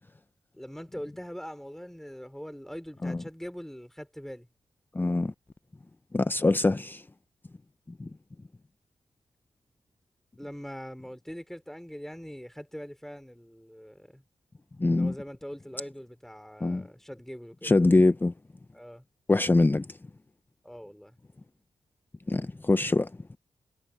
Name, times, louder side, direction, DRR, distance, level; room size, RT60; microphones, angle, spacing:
voice 1, 0.6-4.5 10.4-14.2 14.8-17.7 18.7-19.0 20.6-21.2, equal, 5° left, 5.1 m, -42 dB
voice 2, 4.9-5.3 6.1-7.0 8.0-8.1 14.8-15.1 16.6-16.9 17.6-18.3 19.3-20.0 22.3-23.4, left 2 dB, 20° left, 0.5 m, -24 dB
cardioid pair, 65°, 10 cm